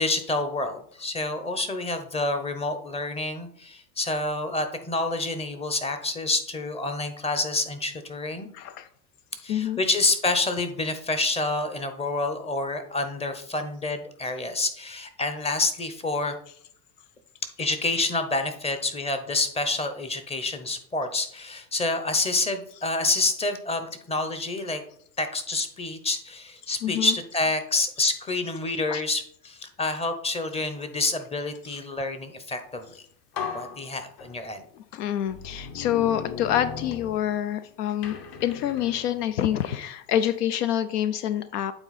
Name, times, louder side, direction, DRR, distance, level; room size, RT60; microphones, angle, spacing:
voice 1, 0.0-8.5 9.4-16.4 17.6-24.8 25.2-32.9 33.5-34.6, left 2 dB, 15° left, 9 dB, 0.6 m, -28 dB
voice 2, 8.5-8.9 9.3-9.8 26.8-27.1 28.9-29.0 31.7-31.8 34.7-41.7, left 11 dB, 80° left, 12 dB, 0.6 m, -27 dB
sound 1, 32.8-32.9 33.3-34.6 35.3-37.6 38.0-39.8, left 6 dB, 45° left, 1.1 m, -38 dB
8.9 x 3.9 x 4.1 m, 0.63 s
supercardioid pair, 120°, 46 cm